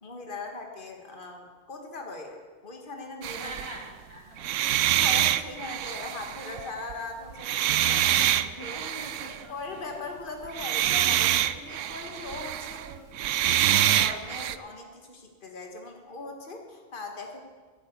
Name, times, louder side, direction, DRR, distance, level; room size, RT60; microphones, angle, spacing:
voice 1, 0.0-3.6 5.0-7.9 8.6-8.8 9.2-12.8 13.4-17.4, left 3 dB, 45° left, 2 dB, 1.9 m, -40 dB
sound 1, 3.2-3.8 4.4-6.9 7.3-9.4 10.5-14.6, right 12 dB, 90° right, 0.9 m, -26 dB
voice 2, 3.3-4.5 7.7-9.5 12.0-12.2 12.8-13.2, equal, 25° left, -3 dB, 2.8 m, -43 dB
11.5 x 10.5 x 8.1 m, 1.4 s
omnidirectional pair, 1.2 m